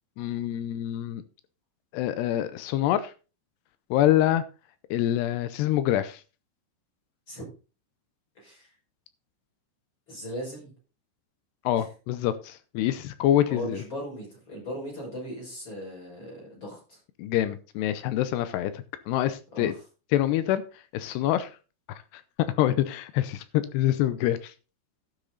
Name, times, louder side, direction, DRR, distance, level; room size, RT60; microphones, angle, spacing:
voice 1, 0.2-1.2 1.9-3.1 3.9-4.4 4.9-6.2 11.7-13.8 17.2-19.7 20.1-20.6 20.9-21.5 22.6-24.5, left 12 dB, 80° left, 2.4 m, -26 dB
voice 2, 8.4-8.7 10.1-10.7 11.7-11.9 13.5-17.0 19.5-19.8, equal, 25° left, 6.0 m, -38 dB
12.0 x 8.3 x 3.9 m
omnidirectional pair, 5.6 m